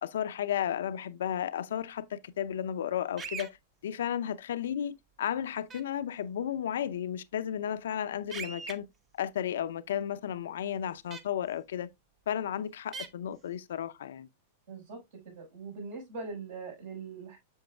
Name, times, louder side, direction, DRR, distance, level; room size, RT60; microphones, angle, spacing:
voice 1, 0.0-3.6 3.8-8.9 9.1-11.9 12.3-14.3, left 9 dB, 75° left, 0.6 m, -33 dB
sound 1, 3.2-3.5 5.7-5.8 8.3-8.7 11.1-11.2 12.9-13.1, right 5 dB, 25° right, 1.0 m, -39 dB
voice 2, 14.7-15.0 15.2-17.4, right 4 dB, 70° right, 5.4 m, -41 dB
7.2 x 7.1 x 2.3 m
hypercardioid pair, 110°, 0 cm